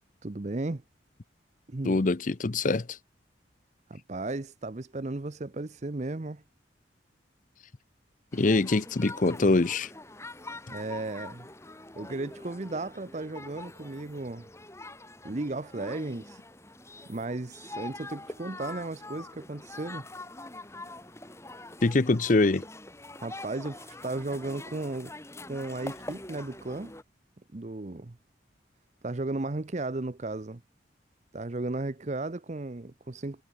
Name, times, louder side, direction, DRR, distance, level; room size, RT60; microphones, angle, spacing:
voice 1, 0.2-0.8 1.7-2.0 3.9-6.4 10.7-11.5 11.9-14.5 15.2-16.4 17.1-20.1 23.2-25.1 25.5-26.9 27.5-28.2 29.0-30.6 31.3-33.4, right 2 dB, 40° right, 0.7 m, -35 dB
voice 2, 1.8-2.9 8.3-9.9 21.8-22.6, left 3 dB, 45° left, 0.7 m, -24 dB
sound 1, 8.3-27.0, left 2 dB, 15° left, 3.7 m, -44 dB
head